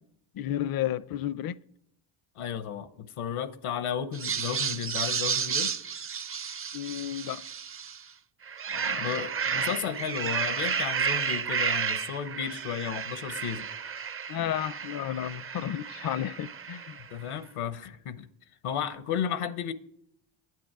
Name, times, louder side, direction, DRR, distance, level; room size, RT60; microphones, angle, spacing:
voice 1, 0.3-1.6 6.7-7.4 8.7-9.1 9.5-9.8 14.3-17.0, left 11 dB, 45° left, 0.5 m, -32 dB
voice 2, 2.4-5.7 9.0-13.7 17.0-18.3 18.6-19.7, left 8 dB, 80° left, 0.9 m, -33 dB
sound 1, 4.1-8.0 8.4-17.1, right 6 dB, 30° right, 0.5 m, -32 dB
9.5 x 8.5 x 4.7 m
cardioid pair, 80°, 50 cm